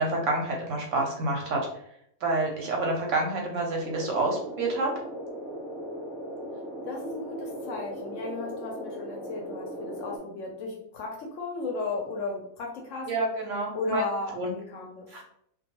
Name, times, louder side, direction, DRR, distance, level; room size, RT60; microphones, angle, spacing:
voice 1, 0.0-1.7 2.2-4.9 13.1-14.0 14.4-14.5 15.1-15.2, right 2 dB, 70° right, 0 dB, 0.8 m, -28 dB
sound 1, 3.8-10.2, equal, 15° left, 0.7 m, -38 dB
voice 2, 6.8-13.2 13.7-15.1, left 3 dB, 70° left, 1 dB, 0.8 m, -35 dB
2.2 x 2.2 x 2.8 m, 0.71 s
omnidirectional pair, 1.5 m